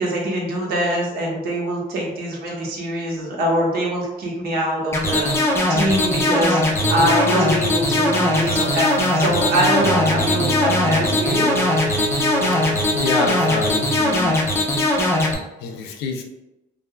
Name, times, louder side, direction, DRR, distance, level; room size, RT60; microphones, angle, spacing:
voice 1, 0.0-11.5, right 1 dB, 65° right, -2 dB, 0.9 m, -23 dB
sound 1, 4.9-15.3, left 1 dB, 15° left, 0.5 m, -20 dB
sound 2, 6.8-14.2, right 1 dB, 10° right, 0.8 m, -28 dB
voice 2, 12.9-14.4 15.6-16.2, left 5 dB, 85° left, 4 dB, 0.4 m, -27 dB
3.3 x 2.0 x 2.2 m, 0.96 s
cardioid pair, 110°, 17 cm